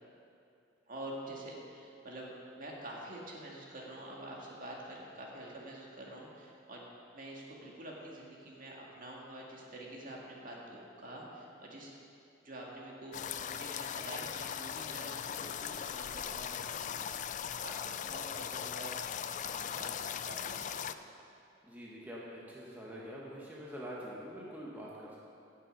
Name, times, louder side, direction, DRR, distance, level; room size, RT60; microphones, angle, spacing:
voice 1, 0.9-2.3 2.6-6.8 7.1-11.9 12.4-19.9 20.2-20.9, right 1 dB, 45° right, -3 dB, 2.0 m, -47 dB
sound 1, 13.1-20.9, left 8 dB, 40° left, 0.3 m, -39 dB
voice 2, 21.6-25.2, equal, 10° right, -5 dB, 1.2 m, -45 dB
16.0 x 6.8 x 5.4 m, 2.7 s
head